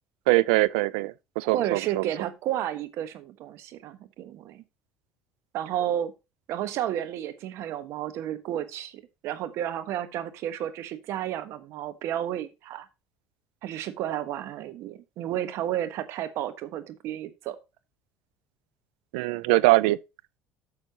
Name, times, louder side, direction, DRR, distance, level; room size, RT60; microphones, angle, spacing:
voice 1, 0.3-2.0 19.1-20.0, right 20 dB, 85° right, 0.4 m, -22 dB
voice 2, 1.4-4.6 5.5-6.1 6.5-12.9 13.6-17.6, right 11 dB, 65° right, 1.2 m, -32 dB
11.0 x 6.7 x 2.9 m
supercardioid pair, 90°, 5 cm